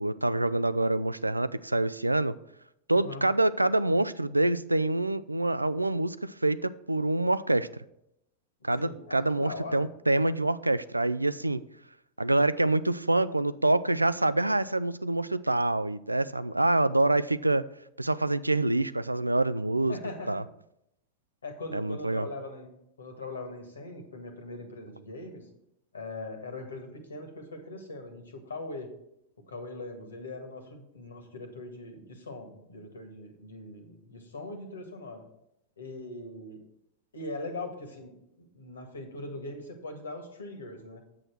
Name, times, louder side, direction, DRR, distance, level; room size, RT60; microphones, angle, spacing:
voice 1, 0.0-2.4 2.9-7.7 8.6-11.6 12.2-17.7 18.0-20.0 20.3-20.4 21.7-22.3, right 2 dB, 85° right, 16 dB, 0.3 m, -26 dB
voice 2, 8.8-9.8 19.9-20.4 21.4-22.7 23.0-25.4 25.9-28.9 29.5-35.2 35.8-36.6 37.1-38.1 38.4-41.0, left 2 dB, 70° left, 6 dB, 1.7 m, -41 dB
8.4 x 7.5 x 4.6 m, 0.80 s
figure-of-eight pair, 90°, 0 cm